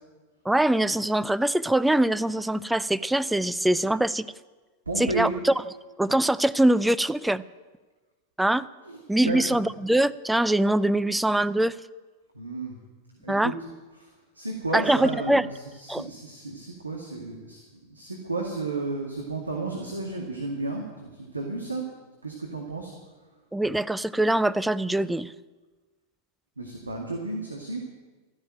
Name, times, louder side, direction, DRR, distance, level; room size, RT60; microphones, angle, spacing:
voice 1, 0.5-4.3 5.0-5.5 6.0-7.4 8.4-8.7 9.1-11.7 13.3-13.5 14.7-15.5 15.9-16.1 23.5-25.3, right 1 dB, 5° right, 14 dB, 0.5 m, -23 dB
voice 2, 4.9-5.3 8.8-9.6 12.3-12.8 13.2-13.5 14.0-21.8 22.2-22.9 26.6-27.8, right 3 dB, 80° right, 0 dB, 2.1 m, -33 dB
13.5 x 10.5 x 9.0 m, 1.3 s
figure-of-eight pair, 90°, 0 cm